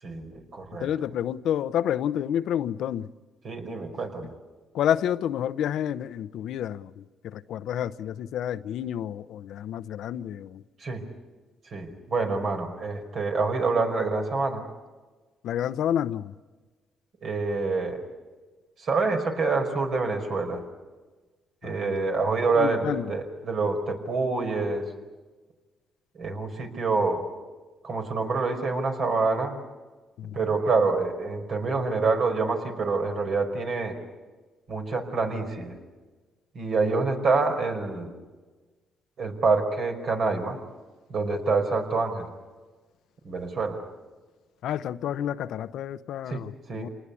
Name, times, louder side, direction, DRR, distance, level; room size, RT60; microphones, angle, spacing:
voice 1, 0.0-0.9 3.4-4.3 10.8-11.0 11.6-14.7 17.2-18.0 18.8-20.6 21.6-24.9 26.1-27.2 27.8-29.6 30.3-34.0 34.7-35.8 36.5-38.1 39.2-40.6 41.1-42.3 43.2-43.8 46.3-46.4 46.7-46.9, right 4 dB, 60° right, 5.1 m, -26 dB
voice 2, 0.8-3.1 4.7-10.6 15.4-16.3 21.6-21.9 22.6-23.1 30.2-30.5 44.6-46.9, left 10 dB, 80° left, 0.8 m, -29 dB
27.5 x 19.5 x 8.5 m
cardioid pair, 90°, 0 cm